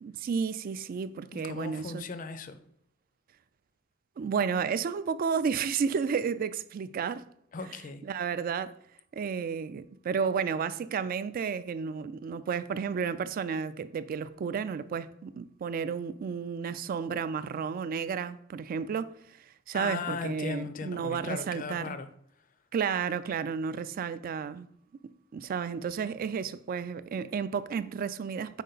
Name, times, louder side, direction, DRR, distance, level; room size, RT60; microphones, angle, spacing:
voice 1, 0.0-2.0 4.2-7.2 8.0-8.7 9.1-22.0 22.7-24.7 25.3-28.6, right 6 dB, 45° right, 0.3 m, -32 dB
voice 2, 1.3-2.6 7.5-8.0 19.7-22.1, left 4 dB, 40° left, 0.4 m, -37 dB
5.4 x 4.6 x 3.9 m
head